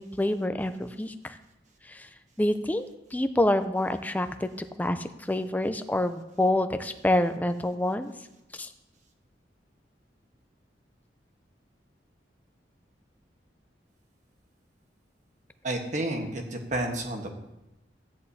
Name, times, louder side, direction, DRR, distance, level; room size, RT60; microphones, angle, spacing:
voice 1, 0.0-1.4 1.9-2.1 2.4-4.5 4.8-8.1 8.6-8.7, left 1 dB, 10° left, 9 dB, 0.4 m, -27 dB
voice 2, 15.6-17.3, right 1 dB, 40° right, 3 dB, 1.3 m, -30 dB
14.0 x 9.6 x 2.8 m, 0.92 s
head